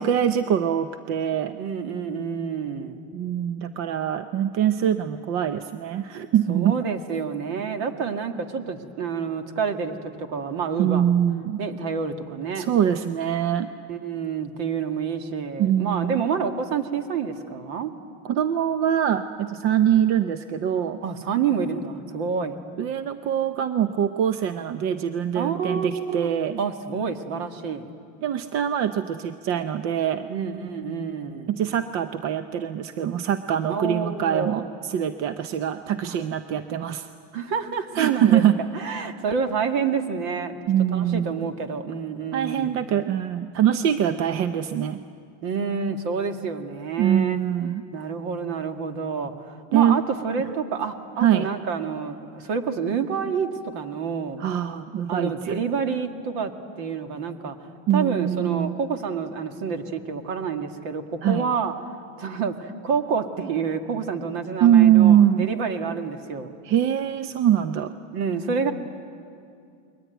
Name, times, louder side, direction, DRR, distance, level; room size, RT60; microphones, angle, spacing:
voice 1, 0.0-1.6 3.1-6.7 10.8-11.6 12.6-13.7 15.6-16.2 18.2-21.0 22.8-26.6 28.2-30.3 31.5-37.1 37.9-38.6 40.7-41.3 42.3-45.0 47.0-47.8 49.7-50.0 51.2-51.5 54.4-55.6 57.9-58.8 61.2-61.5 64.6-65.5 66.6-67.9, right 10 dB, 30° right, 10 dB, 0.6 m, -23 dB
voice 2, 1.6-3.0 6.5-11.1 11.6-12.7 13.9-17.9 21.0-22.6 25.3-26.3 26.6-27.9 30.3-31.5 33.7-34.7 36.0-36.2 37.3-38.4 38.7-40.6 40.9-42.7 45.4-47.4 47.9-54.4 55.1-57.6 57.9-61.7 62.2-66.6 68.1-68.7, right 6 dB, 50° right, 6 dB, 2.2 m, -28 dB
29.0 x 22.0 x 9.2 m, 2.4 s
supercardioid pair, 165°, 41 cm